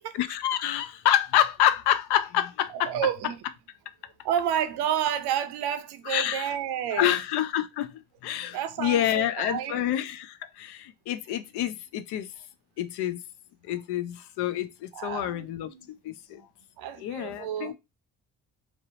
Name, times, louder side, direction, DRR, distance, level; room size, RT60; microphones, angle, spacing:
voice 1, 0.2-2.9 6.1-6.5 6.9-12.3 12.8-13.2 13.6-16.4 17.0-17.7, left 12 dB, 65° left, 0.5 m, -27 dB
voice 2, 2.7-3.4 4.2-7.2 8.5-9.9 14.9-15.9 16.8-17.7, right 9 dB, 65° right, 0.5 m, -30 dB
2.6 x 2.0 x 2.7 m
supercardioid pair, 55°, 42 cm